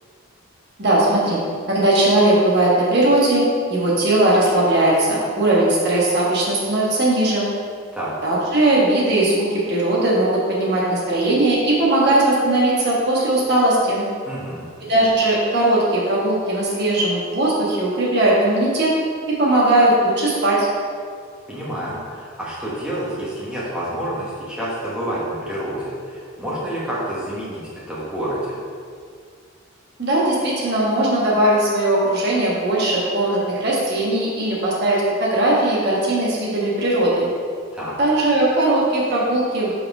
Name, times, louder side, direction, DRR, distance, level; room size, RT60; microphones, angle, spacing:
voice 1, 0.8-1.4 1.7-3.4 3.7-7.5 8.2-14.0 14.9-18.9 19.4-20.7 30.0-37.3 38.0-39.7, right 1 dB, 50° right, -5 dB, 1.5 m, -18 dB
voice 2, 14.2-14.6 21.5-28.6 37.7-37.9, right 1 dB, 5° right, -9 dB, 1.2 m, -28 dB
5.4 x 4.3 x 5.4 m, 2.1 s
head